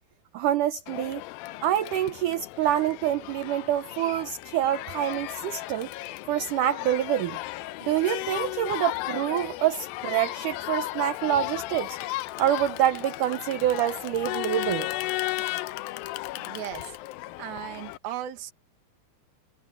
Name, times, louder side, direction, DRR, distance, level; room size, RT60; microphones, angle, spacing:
voice 1, 0.3-1.2 1.6-5.9 6.3-7.4 7.8-12.0 12.4-14.9, right 11 dB, 90° right, 1.8 m, -26 dB
Crowd, 0.9-18.0, left 18 dB, 85° left, 2.1 m, -35 dB
voice 2, 16.3-17.0 17.4-18.5, right 12 dB, 65° right, 3.4 m, -37 dB
omnidirectional pair, 4.8 m